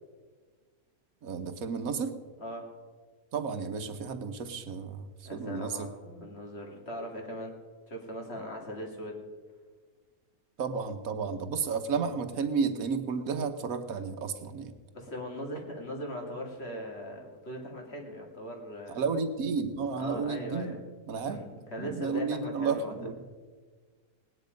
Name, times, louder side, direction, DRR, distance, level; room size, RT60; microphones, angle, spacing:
voice 1, 1.2-2.2 3.3-5.9 10.6-14.7 18.9-20.8 21.1-21.5 21.8-23.2, right 5 dB, 65° right, 8 dB, 1.4 m, -32 dB
voice 2, 2.4-2.8 5.2-7.6 7.9-9.2 14.9-19.0 20.0-20.8 21.2-22.9, equal, 40° left, 1 dB, 2.5 m, -39 dB
18.5 x 9.9 x 5.2 m, 1.5 s
omnidirectional pair, 1.7 m